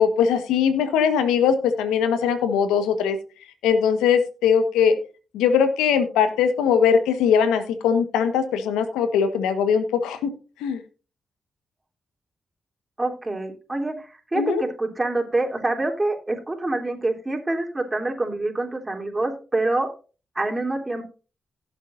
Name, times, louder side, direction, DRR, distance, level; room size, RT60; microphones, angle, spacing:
voice 1, 0.0-3.2 3.6-5.0 5.3-10.3 10.6-10.8 14.3-14.6, left 7 dB, 85° left, 10 dB, 1.3 m, -20 dB
voice 2, 13.0-19.9 20.4-21.0, right 2 dB, 25° right, 1 dB, 3.5 m, -26 dB
17.0 x 7.5 x 2.6 m, 0.34 s
hypercardioid pair, 40°, 0 cm